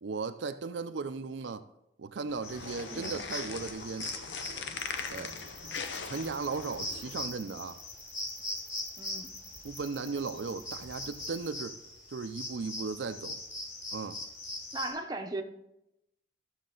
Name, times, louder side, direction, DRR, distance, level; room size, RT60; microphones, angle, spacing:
voice 1, 0.0-1.6 2.0-4.1 5.1-5.4 6.0-7.8 9.6-11.8 12.1-13.4 13.9-14.2, right 4 dB, 75° right, 0.5 m, -36 dB
sound 1, 2.3-7.3, left 5 dB, 70° left, 0.7 m, -40 dB
sound 2, 2.4-14.9, left 1 dB, 50° left, 3.4 m, -42 dB
sound 3, 4.8-11.5, left 1 dB, 15° left, 1.4 m, -54 dB
voice 2, 9.0-9.3 14.7-15.4, right 2 dB, 20° right, 0.7 m, -37 dB
13.5 x 6.4 x 3.9 m
head